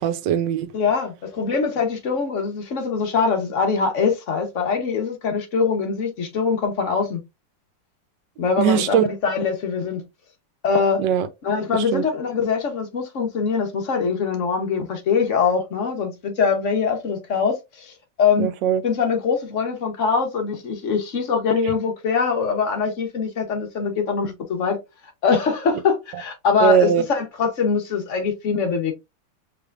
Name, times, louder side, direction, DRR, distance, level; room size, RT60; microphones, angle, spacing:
voice 1, 0.0-0.7 8.6-9.0 11.0-11.3 11.7-12.0 18.4-18.8 26.6-27.0, right 9 dB, 75° right, 1.3 m, -20 dB
voice 2, 0.7-7.2 8.4-10.0 10.6-11.0 11.4-17.9 18.2-18.5 18.8-24.8 25.2-28.9, left 5 dB, 50° left, 1.1 m, -23 dB
4.8 x 3.3 x 2.4 m
omnidirectional pair, 2.0 m